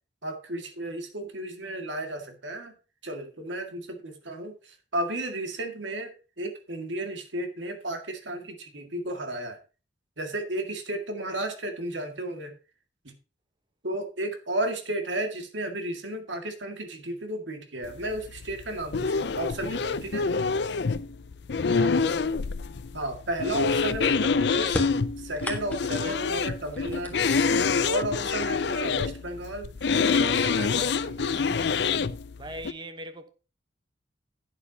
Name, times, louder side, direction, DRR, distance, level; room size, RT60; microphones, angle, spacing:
voice 1, 0.2-2.7 3.0-9.6 10.2-12.5 13.0-13.1 13.8-20.3 22.9-24.8 25.2-27.3 27.8-31.4, right 1 dB, 75° right, 2.0 m, -33 dB
sound 1, 17.8-32.7, left 5 dB, 60° left, 0.5 m, -27 dB
voice 2, 21.7-22.4 32.3-33.3, right 1 dB, 25° right, 1.1 m, -41 dB
sound 2, 24.7-26.1 26.7-27.8 28.9-29.0 30.0-30.1 30.5-31.0, left 1 dB, 10° left, 1.4 m, -36 dB
11.5 x 9.0 x 2.8 m
head